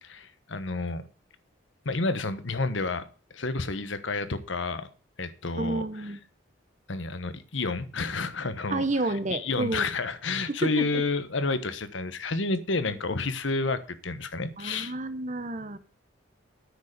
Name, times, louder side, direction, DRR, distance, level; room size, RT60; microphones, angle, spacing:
voice 1, 0.0-1.0 1.8-3.1 3.3-4.9 5.2-5.8 6.9-8.8 9.3-14.9, left 3 dB, 70° left, 1.1 m, -30 dB
voice 2, 5.6-6.2 8.7-9.9 10.5-10.8 12.9-13.0 14.6-15.8, right 2 dB, 35° right, 1.1 m, -30 dB
9.4 x 6.8 x 6.6 m
head